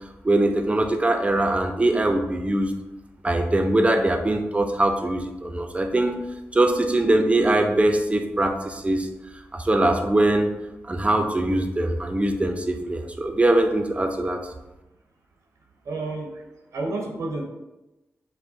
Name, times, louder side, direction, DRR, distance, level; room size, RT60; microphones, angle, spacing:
voice 1, 0.2-2.7 3.2-6.2 6.5-9.1 9.5-10.5 10.8-14.4, right 1 dB, 25° right, 4 dB, 0.6 m, -22 dB
voice 2, 15.9-16.3 16.7-17.4, right 2 dB, 80° right, 1 dB, 0.8 m, -29 dB
6.1 x 2.2 x 2.7 m, 1.0 s
cardioid pair, 50°, 5 cm